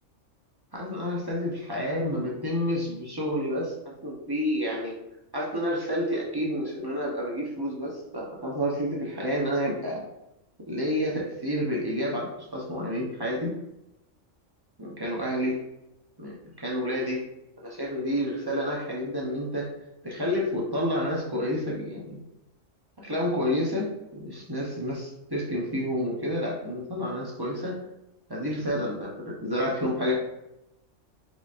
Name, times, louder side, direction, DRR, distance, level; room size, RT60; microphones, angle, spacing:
voice 1, 0.7-5.0 5.3-10.0 10.7-13.6 14.8-15.6 16.2-17.2 17.6-19.7 20.0-22.2 23.0-23.9 24.1-27.8 28.3-30.1, equal, 25° right, -4 dB, 0.7 m, -29 dB
5.0 x 3.5 x 2.5 m, 0.89 s
omnidirectional pair, 1.3 m